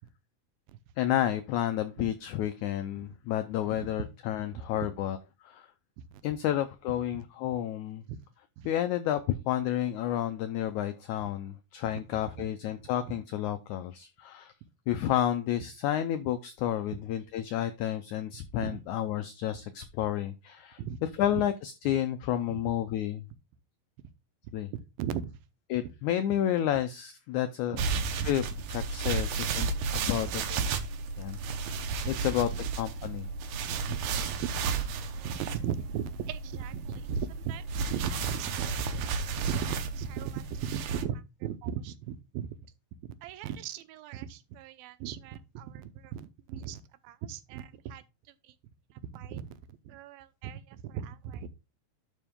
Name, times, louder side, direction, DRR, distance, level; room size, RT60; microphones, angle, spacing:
voice 1, 1.0-5.2 5.4-5.7 6.2-8.0 8.6-14.5 14.9-20.8 21.2-23.2 24.5-24.7 25.7-27.8 28.1-28.4 28.7-30.6 31.2-31.8 32.1-32.5 32.8-33.3, left 11 dB, 90° left, 1.7 m, -31 dB
voice 2, 4.5-4.9 6.0-6.2 8.1-8.2 8.6-8.7 12.4-12.5 13.1-13.2 18.6-18.8 20.8-21.0 21.3-21.4 22.5-22.6 25.0-25.3 27.8-28.3 30.1-30.2 31.9-32.4 33.0-33.1 33.9-34.4 35.2-39.1 39.4-42.7 43.0-48.0 48.4-48.5 48.9-51.5, right 9 dB, 85° right, 2.5 m, -38 dB
sound 1, 27.8-41.0, right 4 dB, 70° right, 1.8 m, -33 dB
11.0 x 4.6 x 3.6 m
omnidirectional pair, 4.2 m